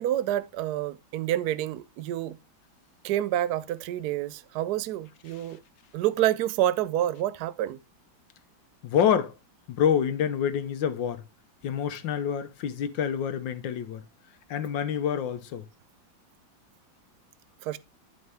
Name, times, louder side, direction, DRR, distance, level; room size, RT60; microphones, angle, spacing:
voice 1, 0.0-2.4 3.0-5.6 5.9-7.8 17.6-17.8, right 13 dB, 70° right, 1.0 m, -28 dB
voice 2, 8.8-9.3 9.7-11.2 11.6-14.0 14.5-15.6, left 8 dB, 70° left, 1.6 m, -27 dB
11.5 x 5.4 x 3.4 m
omnidirectional pair, 2.2 m